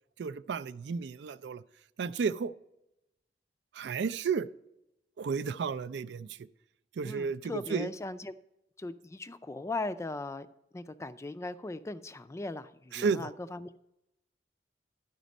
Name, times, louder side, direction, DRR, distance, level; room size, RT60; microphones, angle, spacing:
voice 1, 0.2-1.6 2.0-2.5 3.7-4.5 5.2-6.4 7.0-7.9 12.9-13.3, right 5 dB, 75° right, 14 dB, 0.4 m, -32 dB
voice 2, 7.0-8.3 8.8-10.5 10.7-13.8, left 2 dB, 15° left, 14 dB, 0.3 m, -39 dB
12.0 x 5.1 x 5.2 m, 0.88 s
head